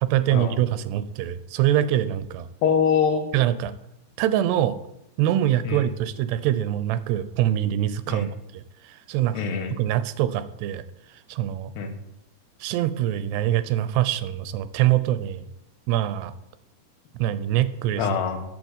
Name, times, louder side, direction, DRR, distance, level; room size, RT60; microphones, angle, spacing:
voice 1, 0.0-2.5 3.3-3.7 4.2-4.8 5.2-9.5 9.8-10.8 11.3-11.7 12.6-15.5 15.9-16.3 17.1-18.1, right 12 dB, 85° right, 13 dB, 2.8 m, -24 dB
voice 2, 2.6-3.3 5.7-5.8 8.1-8.3 9.3-9.7 11.8-11.9 18.0-18.4, left 6 dB, 80° left, 6 dB, 3.5 m, -24 dB
12.0 x 7.0 x 8.1 m, 0.84 s
omnidirectional pair, 4.8 m